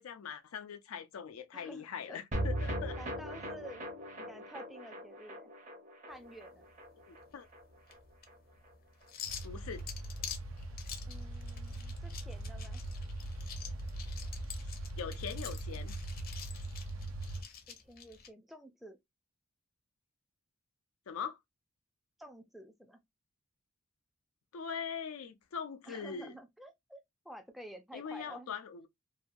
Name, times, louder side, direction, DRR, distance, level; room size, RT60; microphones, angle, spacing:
voice 1, 0.0-3.0 7.1-7.5 9.4-9.9 14.5-14.6 15.0-15.9 21.1-21.4 24.5-26.3 27.9-28.9, left 7 dB, 90° left, 0.5 m, -42 dB
voice 2, 1.5-2.2 2.9-5.5 6.1-6.7 11.1-12.8 17.7-19.0 22.2-23.0 25.9-28.5, right 1 dB, ahead, 0.4 m, -51 dB
sound 1, 2.3-8.7 9.0-9.1 9.4-9.5, right 1 dB, 35° right, 0.7 m, -40 dB
sound 2, 6.1-18.3, left 8 dB, 45° left, 0.6 m, -48 dB
sound 3, 9.3-17.4, right 1 dB, 75° right, 0.5 m, -41 dB
2.7 x 2.2 x 2.5 m
head